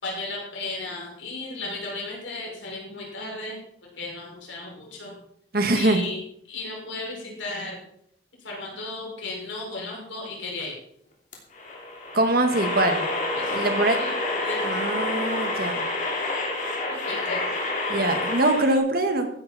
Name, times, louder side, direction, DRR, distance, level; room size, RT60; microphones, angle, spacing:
voice 1, 0.0-3.6 4.0-5.2 5.7-6.2 6.5-7.8 8.4-10.8 13.4-15.1 16.9-17.4, left 2 dB, 85° left, -2 dB, 5.9 m, -35 dB
voice 2, 5.5-6.0 12.1-13.0 13.5-14.0 14.6-15.8 17.9-19.3, right 2 dB, 50° right, 6 dB, 1.9 m, -23 dB
sound 1, 11.3-18.8, left 2 dB, 40° left, 3.0 m, -28 dB
14.5 x 11.0 x 4.3 m, 0.69 s
head